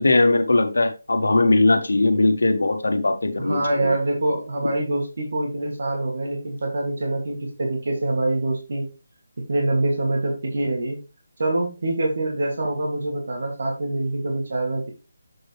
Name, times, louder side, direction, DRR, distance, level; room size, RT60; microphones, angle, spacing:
voice 1, 0.0-4.0, left 2 dB, 90° left, 5 dB, 1.5 m, -19 dB
voice 2, 3.4-8.9 9.4-11.0 11.4-14.9, right 2 dB, 65° right, 0 dB, 2.5 m, -25 dB
7.7 x 5.1 x 3.3 m, 0.29 s
figure-of-eight pair, 165°, 0 cm